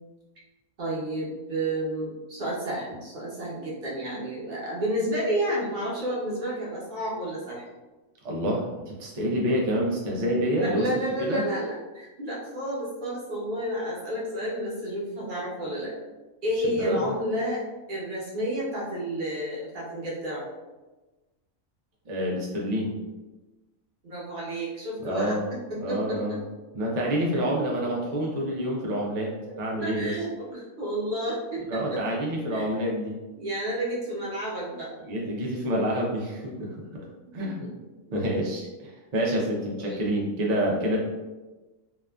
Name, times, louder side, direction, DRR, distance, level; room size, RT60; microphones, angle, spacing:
voice 1, 0.8-7.6 10.6-15.9 16.4-17.6 17.9-20.4 24.0-26.4 29.8-32.0 32.5-32.7 33.4-34.9 35.5-35.7 37.4-37.7 38.1-38.2 39.8-40.0, right 1 dB, 45° right, -6 dB, 0.8 m, -31 dB
voice 2, 8.2-10.9 11.2-11.4 16.6-17.1 22.1-23.0 25.0-25.5 25.8-26.4 26.7-30.1 31.7-33.2 35.0-37.0 37.3-37.7 38.1-41.1, equal, 80° right, -3 dB, 0.3 m, -28 dB
2.7 x 2.4 x 2.2 m, 1.2 s
omnidirectional pair, 1.4 m